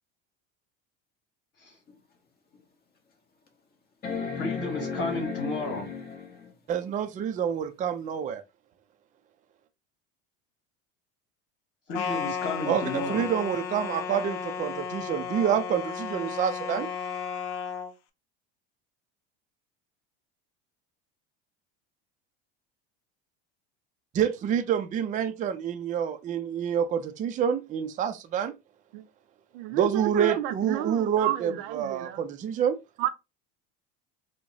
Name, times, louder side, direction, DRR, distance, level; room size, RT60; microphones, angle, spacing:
sound 1, 1.9-2.0 2.6-2.7 4.0-6.5 8.2-8.3, left 5 dB, 35° left, 1.1 m, -34 dB
voice 1, 4.4-5.9 11.9-13.3, left 2 dB, 50° left, 1.8 m, -32 dB
voice 2, 6.7-8.4 12.7-16.9 24.1-28.5 29.7-32.8, right 8 dB, 25° right, 0.4 m, -28 dB
sound 2, 11.9-17.9, left 6 dB, 75° left, 0.7 m, -34 dB
voice 3, 29.5-32.2 33.0-33.1, right 13 dB, 80° right, 0.6 m, -30 dB
4.5 x 2.1 x 2.6 m
supercardioid pair, 120°, 29 cm